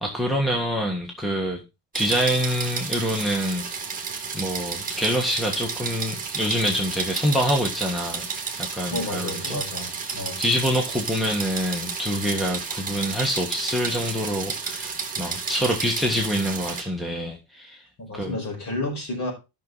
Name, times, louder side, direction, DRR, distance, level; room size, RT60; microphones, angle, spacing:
voice 1, 0.0-1.6 1.9-3.7 4.3-8.3 8.6-9.6 10.4-17.8 18.1-18.4, equal, ahead, 1 dB, 1.6 m, -26 dB
sound 1, 1.9-16.8, right 5 dB, 20° right, 2.2 m, -32 dB
voice 2, 8.9-10.4 18.0-19.3, left 2 dB, 45° left, 2 dB, 5.2 m, -31 dB
12.0 x 6.2 x 4.0 m, 0.26 s
cardioid pair, 150°, 40 cm